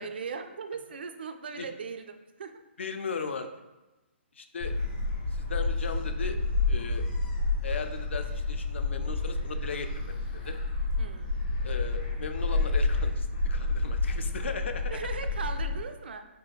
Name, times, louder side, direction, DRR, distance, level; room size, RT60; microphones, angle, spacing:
voice 1, 0.0-2.6 11.0-11.4 14.9-16.3, right 5 dB, 55° right, 7 dB, 0.3 m, -39 dB
voice 2, 2.8-3.5 4.3-4.7 5.3-6.4 6.7-7.0 7.6-10.6 11.6-15.0, left 5 dB, 70° left, 7 dB, 0.4 m, -37 dB
Gull seagull, 4.6-15.8, left 3 dB, 35° left, 1.4 m, -29 dB
5.0 x 3.3 x 2.2 m, 1.1 s
hypercardioid pair, 180°, 7 cm